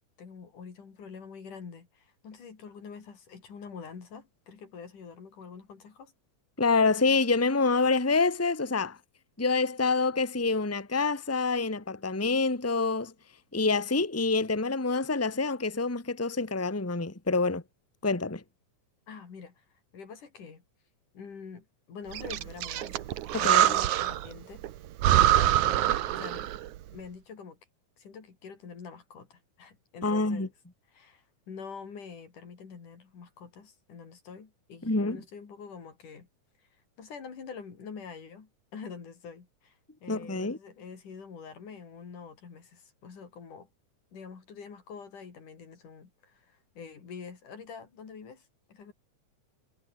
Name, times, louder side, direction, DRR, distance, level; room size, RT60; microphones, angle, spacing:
voice 1, 0.0-6.1 19.1-19.7 19.9-20.6 21.1-24.6 25.1-26.5 26.9-27.6 28.0-30.5 30.9-36.3 37.0-43.7 44.1-48.9, left 6 dB, 80° left, 5.6 m, -46 dB
voice 2, 6.6-9.0 9.4-13.1 13.5-17.6 18.0-18.4 23.3-23.8 30.0-30.5 34.8-35.2 40.1-40.6, left 3 dB, 5° left, 1.8 m, -27 dB
Breathing, 22.1-24.3 24.6-24.7 25.0-26.7, right 13 dB, 75° right, 2.5 m, -24 dB
omnidirectional pair, 3.6 m